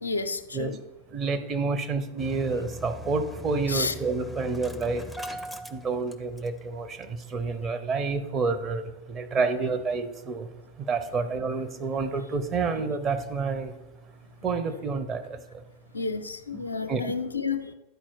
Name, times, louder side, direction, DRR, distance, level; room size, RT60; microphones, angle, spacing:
voice 1, 0.0-0.8 3.7-3.9 15.9-17.7, left 4 dB, 85° left, 7 dB, 0.4 m, -30 dB
voice 2, 1.1-5.4 5.7-8.8 9.1-10.5 10.8-13.7 14.4-15.6 16.5-17.1 17.5-17.6, right 4 dB, 30° right, 8 dB, 0.8 m, -29 dB
Engine starting, 2.2-6.7 7.0-7.1 7.4-7.6, equal, ahead, 0.6 m, -40 dB
10.5 x 4.4 x 4.6 m, 1.0 s
figure-of-eight pair, 90°, 0 cm